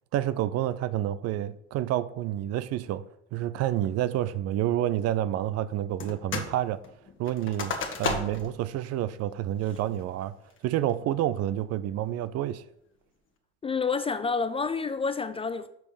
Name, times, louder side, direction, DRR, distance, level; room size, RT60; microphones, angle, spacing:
voice 1, 0.1-6.8 7.2-10.4 10.6-12.6, right 12 dB, 45° right, 0.5 m, -29 dB
sound 1, 6.0-6.6 6.8-8.5 9.0-9.1 9.6-10.0 10.5-10.9, left 4 dB, 35° left, 1.5 m, -33 dB
voice 2, 13.6-15.7, left 5 dB, 15° left, 0.3 m, -28 dB
6.6 x 5.1 x 5.1 m
hypercardioid pair, 65°, 35 cm